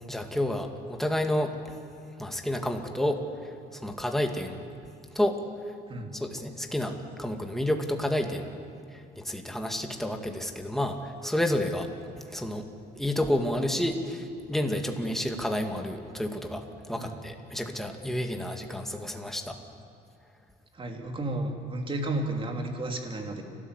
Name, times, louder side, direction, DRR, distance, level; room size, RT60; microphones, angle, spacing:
voice 1, 0.1-1.5 2.2-3.2 3.7-4.6 5.1-5.4 6.1-6.9 7.2-8.5 8.9-11.9 12.3-12.7 13.0-16.6 16.9-19.6, left 1 dB, ahead, 4 dB, 2.2 m, -30 dB
voice 2, 20.7-23.4, right 2 dB, 30° right, 3 dB, 3.0 m, -32 dB
29.5 x 13.5 x 8.3 m, 2.4 s
cardioid pair, 110°, 17 cm